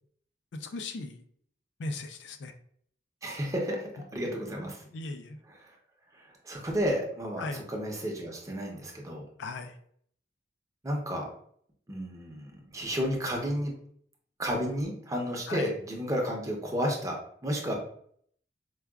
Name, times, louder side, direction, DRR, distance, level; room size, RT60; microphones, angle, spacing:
voice 1, 0.5-1.2 1.8-2.5 4.9-5.4 7.4-7.6 9.4-9.7 15.5-15.7, left 3 dB, 65° left, 7 dB, 0.4 m, -37 dB
voice 2, 3.2-4.8 5.5-5.7 6.1-9.3 10.8-11.3 11.9-13.7 14.4-17.2 17.4-17.8, equal, 20° right, 0 dB, 0.6 m, -32 dB
4.6 x 2.2 x 2.3 m, 0.63 s
head